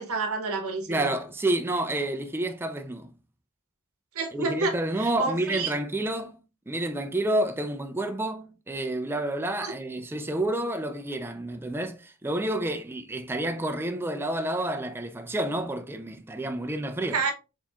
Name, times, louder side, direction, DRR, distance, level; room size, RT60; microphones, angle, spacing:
voice 1, 0.0-1.1 4.1-5.7 9.6-9.7 17.1-17.3, right 4 dB, 70° right, 0.8 m, -29 dB
voice 2, 0.9-3.1 4.3-6.4 6.7-17.2, right 1 dB, 10° right, 0.3 m, -29 dB
4.4 x 3.6 x 2.3 m
head